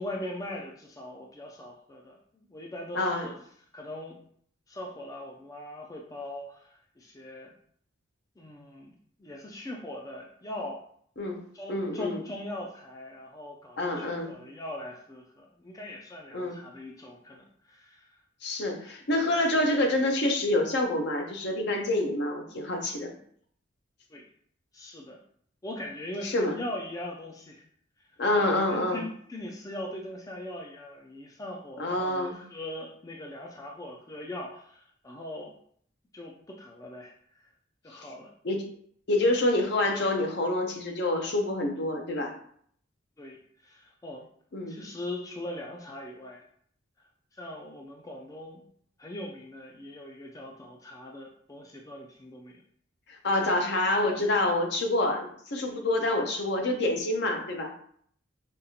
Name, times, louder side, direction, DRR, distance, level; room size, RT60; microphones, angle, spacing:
voice 1, 0.0-3.3 3.7-4.2 4.7-7.5 8.4-8.9 9.2-10.8 11.5-18.2 24.1-24.2 24.7-25.2 25.6-27.6 28.3-35.5 36.1-37.5 37.8-38.3 43.2-44.2 44.7-46.5 47.0-48.6 49.0-52.6, left 1 dB, 15° left, 0 dB, 0.4 m, -41 dB
voice 2, 2.9-3.3 11.2-11.4 11.7-12.2 13.8-14.3 16.3-16.6 18.4-23.1 26.2-26.6 28.2-29.0 31.8-32.4 37.9-38.0 38.4-38.6 39.1-42.3 44.5-44.8 53.1-57.7, left 1 dB, 60° left, 3 dB, 0.7 m, -27 dB
5.2 x 2.4 x 2.8 m, 0.62 s
head